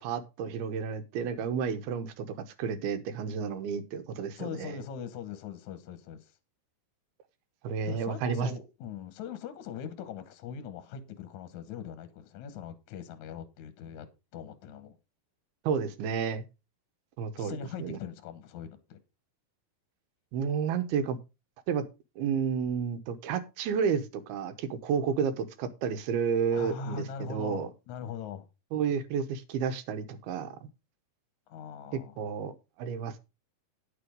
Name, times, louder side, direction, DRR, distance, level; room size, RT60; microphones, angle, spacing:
voice 1, 0.0-4.8 7.6-8.5 15.6-16.4 17.2-18.0 20.3-21.2 21.7-21.9 22.2-27.7 28.7-30.6 31.9-33.2, right 6 dB, 80° right, 2.9 m, -31 dB
voice 2, 4.4-6.3 7.9-14.1 14.3-15.0 17.4-19.0 26.5-28.5 31.5-32.2, left 7 dB, 65° left, 2.1 m, -41 dB
10.0 x 6.9 x 5.1 m
omnidirectional pair, 4.5 m